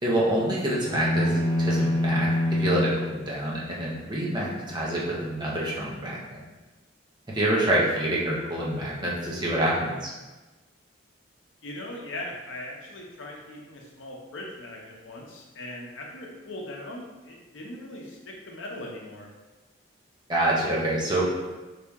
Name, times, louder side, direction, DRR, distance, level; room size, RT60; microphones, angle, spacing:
voice 1, 0.0-6.4 7.3-10.1 20.3-21.3, right 1 dB, 20° right, -5 dB, 0.7 m, -27 dB
sound 1, 0.8-3.1, left 1 dB, 10° left, 1.5 m, -25 dB
voice 2, 11.6-19.3, left 1 dB, 75° left, -1 dB, 0.7 m, -39 dB
3.3 x 2.8 x 3.4 m, 1.2 s
head